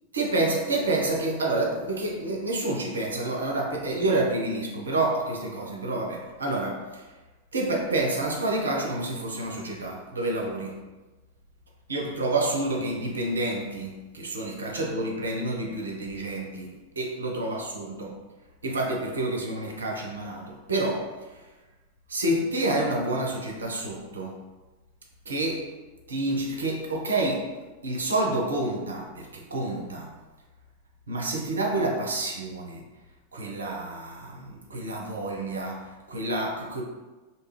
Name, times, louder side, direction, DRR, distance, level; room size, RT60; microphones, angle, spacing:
voice 1, 0.1-7.1 7.5-10.8 11.9-18.2 18.6-21.1 22.1-24.4 25.3-25.7 26.1-27.5 27.8-30.1 31.1-32.8 33.3-36.8, right 2 dB, 70° right, 0 dB, 0.5 m, -28 dB
2.7 x 2.3 x 2.9 m, 1.2 s
figure-of-eight pair, 90°, 0 cm